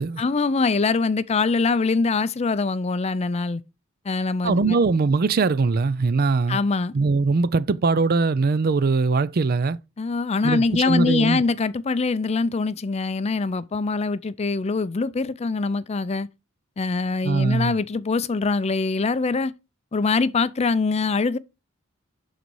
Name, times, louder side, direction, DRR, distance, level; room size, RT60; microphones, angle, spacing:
voice 1, 0.2-3.6 4.1-4.8 6.5-6.9 10.0-16.3 16.8-19.5 19.9-21.4, left 4 dB, 30° left, 0.4 m, -23 dB
voice 2, 4.4-6.6 6.9-9.8 10.4-11.4 17.2-17.8, right 4 dB, 45° right, 0.5 m, -21 dB
11.5 x 4.1 x 4.7 m
head